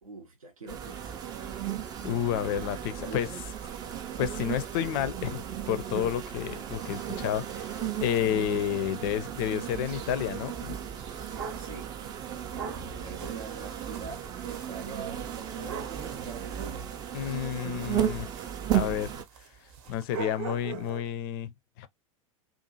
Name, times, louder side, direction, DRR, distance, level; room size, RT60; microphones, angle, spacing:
voice 1, 0.0-1.4 3.0-3.4 11.6-11.9 12.9-16.9, right 3 dB, 80° right, 0.6 m, -44 dB
sound 1, 0.7-19.2, right 10 dB, 25° right, 0.4 m, -35 dB
voice 2, 2.0-3.3 4.2-10.8 17.1-18.3 18.7-19.1 19.9-21.5 21.8-21.9, left 10 dB, 40° left, 0.4 m, -30 dB
sound 2, 9.7-11.8 12.5-21.1, right 7 dB, 45° right, 0.7 m, -43 dB
2.6 x 2.4 x 2.7 m
figure-of-eight pair, 90°, 18 cm